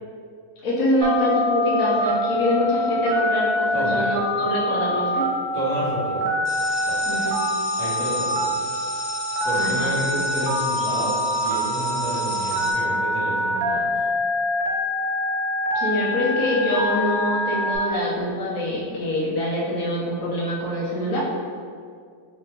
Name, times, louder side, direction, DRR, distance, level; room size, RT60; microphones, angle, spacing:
voice 1, 0.6-5.2 7.1-7.4 9.6-9.9 15.7-21.2, left 1 dB, 60° left, -6 dB, 1.0 m, -24 dB
Telephone, 1.0-17.8, left 1 dB, 90° right, 1.3 m, -25 dB
voice 2, 5.5-6.3 6.9-7.0 7.8-8.5 9.4-13.9, right 1 dB, 20° left, -11 dB, 1.0 m, -30 dB
sound 1, 6.5-12.7, left 2 dB, 90° left, 1.6 m, -34 dB
3.3 x 3.0 x 3.2 m, 2.2 s
omnidirectional pair, 2.0 m